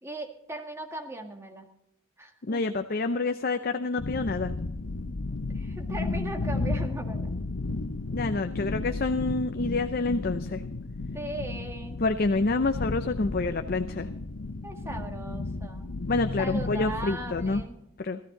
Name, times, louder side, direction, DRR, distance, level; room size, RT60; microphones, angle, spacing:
voice 1, 0.0-1.6 2.2-2.6 5.5-7.3 11.1-12.0 14.6-16.0 16.4-17.8, right 1 dB, 15° right, 3 dB, 1.9 m, -38 dB
voice 2, 2.4-4.5 8.1-10.6 12.0-14.1 16.1-17.6 18.0-18.2, left 3 dB, 50° left, 8 dB, 0.6 m, -28 dB
sound 1, 4.0-17.6, left 3 dB, 85° left, 0.9 m, -33 dB
16.5 x 13.5 x 3.9 m, 0.81 s
head